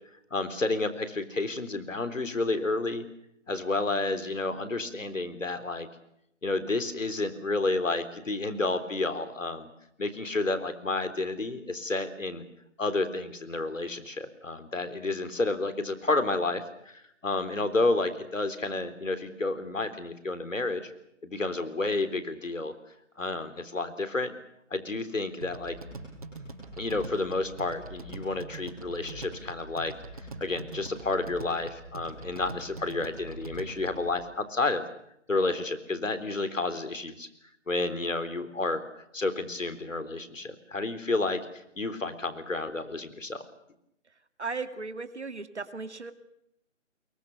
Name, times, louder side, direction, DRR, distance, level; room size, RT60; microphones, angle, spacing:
voice 1, 0.3-3.0 3.5-5.9 6.4-9.7 10.0-12.4 12.8-20.9 21.2-22.7 23.2-24.3 24.7-25.8 26.8-29.9 30.4-34.8 35.3-37.3 37.7-38.8 39.1-43.4, left 2 dB, 80° left, 11 dB, 3.9 m, -30 dB
sound 1, 25.4-34.1, right 2 dB, 30° right, 5.7 m, -43 dB
voice 2, 44.4-46.1, right 4 dB, 60° right, 10 dB, 2.3 m, -36 dB
26.0 x 23.0 x 6.7 m, 0.77 s
figure-of-eight pair, 180°, 39 cm